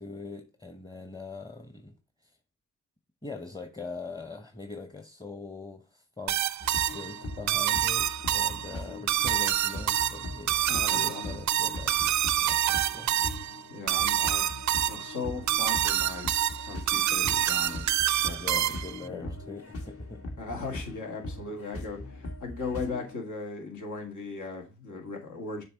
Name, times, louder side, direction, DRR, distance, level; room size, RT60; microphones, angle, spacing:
voice 1, 0.0-1.9 2.2-2.3 3.2-6.5 6.9-13.1 18.4-20.3, left 3 dB, 15° left, 1.0 m, -42 dB
sound 1, 6.3-19.0, right 12 dB, 65° right, 0.5 m, -27 dB
sound 2, 6.6-23.2, left 1 dB, 50° left, 1.6 m, -41 dB
voice 2, 10.7-11.3 13.7-14.4 14.9-16.3 16.7-18.8 19.1-19.3 20.4-25.6, left 4 dB, 70° left, 2.0 m, -38 dB
6.7 x 3.2 x 4.5 m
cardioid pair, 55°, 31 cm